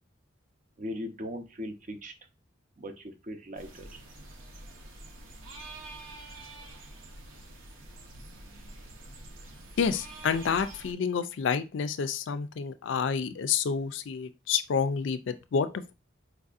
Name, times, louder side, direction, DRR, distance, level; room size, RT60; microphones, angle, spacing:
voice 1, 0.8-2.1 2.8-4.0, equal, 40° right, 0.6 m, -39 dB
sound 1, 3.5-10.9, right 2 dB, 80° right, 0.8 m, -46 dB
voice 2, 9.8-15.9, left 6 dB, 65° left, 0.4 m, -29 dB
4.5 x 2.6 x 2.4 m
head